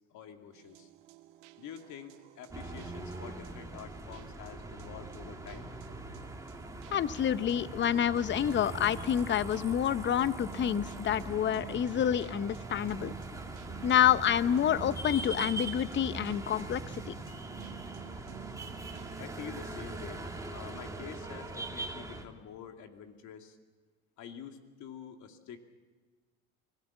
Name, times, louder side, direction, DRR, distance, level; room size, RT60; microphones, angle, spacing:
voice 1, 0.1-0.9 1.6-5.7 19.2-20.2 20.5-23.6 24.2-25.6, left 8 dB, 55° left, 5 dB, 2.5 m, -47 dB
sound 1, 0.5-19.3, right 13 dB, 85° right, 1.3 m, -51 dB
sound 2, 2.5-22.2, right 2 dB, 10° right, 2.5 m, -41 dB
voice 2, 6.9-13.1 13.8-16.8, left 10 dB, 35° left, 16 dB, 0.8 m, -28 dB
24.5 x 17.5 x 7.2 m, 1.3 s
supercardioid pair, 95°, 34 cm